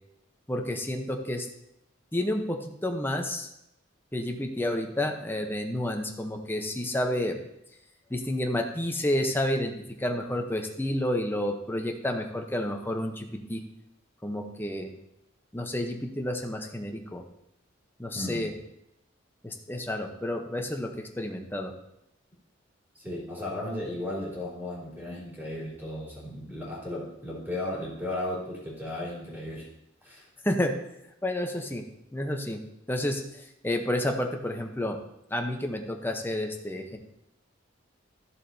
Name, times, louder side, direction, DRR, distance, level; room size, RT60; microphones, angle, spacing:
voice 1, 0.5-1.5 2.1-3.5 4.1-7.4 8.1-13.6 14.2-14.9 15.5-17.2 18.0-18.5 19.4-21.7 30.4-30.8 31.2-31.8 32.1-32.6 32.9-35.0 35.3-37.0, left 1 dB, 10° left, 3 dB, 0.8 m, -30 dB
voice 2, 18.1-18.5 22.9-29.7 30.0-30.3, left 1 dB, 10° right, -6 dB, 3.4 m, -35 dB
14.0 x 7.2 x 2.7 m, 0.84 s
head